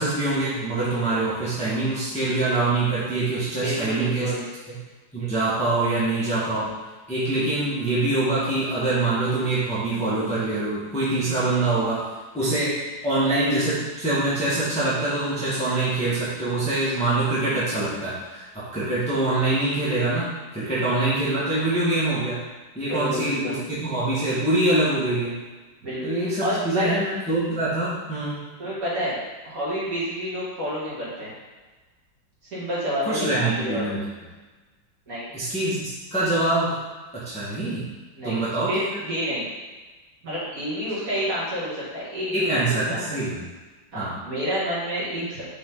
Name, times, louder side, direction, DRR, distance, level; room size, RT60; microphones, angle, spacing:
voice 1, 0.0-4.3 5.1-6.7 7.1-12.0 12.3-12.8 13.0-22.4 22.7-25.3 26.0-28.4 33.0-34.0 35.3-36.8 37.1-37.8 38.2-38.8 42.3-43.4 43.9-44.1, right 2 dB, 5° left, -10 dB, 1.4 m, -24 dB
voice 2, 3.6-4.4 22.9-23.5 25.8-26.9 28.6-29.2 29.4-31.3 32.5-33.9 35.1-35.3 38.2-38.4 38.7-39.5 40.2-43.0 43.9-45.5, equal, 45° right, -10 dB, 2.6 m, -29 dB
6.5 x 3.9 x 3.8 m, 1.3 s
omnidirectional pair, 2.1 m